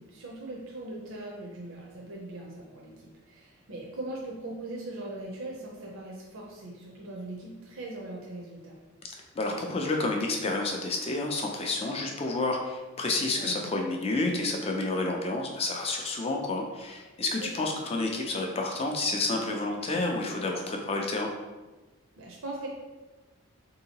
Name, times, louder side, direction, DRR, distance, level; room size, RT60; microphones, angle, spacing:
voice 1, 0.0-8.8 13.4-13.7 17.2-17.5 22.2-22.7, right 2 dB, 70° right, -3 dB, 0.5 m, -40 dB
voice 2, 9.4-21.3, left 2 dB, 25° left, 2 dB, 0.4 m, -30 dB
3.7 x 2.7 x 2.8 m, 1.2 s
head